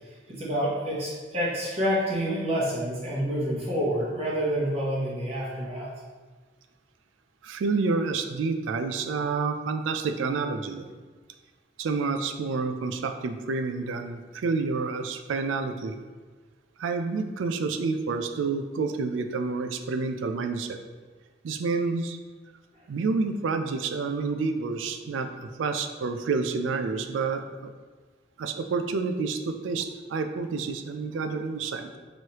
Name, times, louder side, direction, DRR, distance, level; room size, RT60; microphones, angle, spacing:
voice 1, 0.3-5.9, equal, 30° right, -6 dB, 0.9 m, -28 dB
voice 2, 7.4-10.9 11.8-15.9 16.8-20.8 21.4-22.2 22.9-27.7 28.4-32.0, right 4 dB, 85° right, 7 dB, 0.4 m, -29 dB
4.6 x 3.1 x 2.9 m, 1.4 s
head